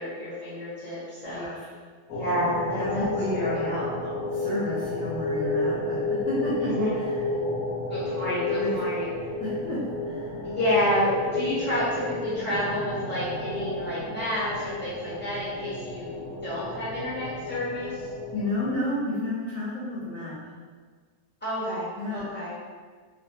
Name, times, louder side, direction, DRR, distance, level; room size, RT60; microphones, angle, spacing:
voice 1, 0.0-1.5 2.1-3.0 3.3-4.1 6.7-6.9 7.9-9.1 10.4-16.1 16.4-18.0 21.4-22.5, left 1 dB, 10° left, -11 dB, 0.8 m, -29 dB
voice 2, 1.2-1.6 2.7-3.6 4.3-7.2 8.6-8.7 9.4-10.4 18.3-20.4 21.9-22.3, left 1 dB, 65° left, -9 dB, 1.0 m, -31 dB
sound 1, 2.1-18.8, left 2 dB, 80° left, 1.1 m, -31 dB
2.6 x 2.2 x 2.7 m, 1.6 s
omnidirectional pair, 1.7 m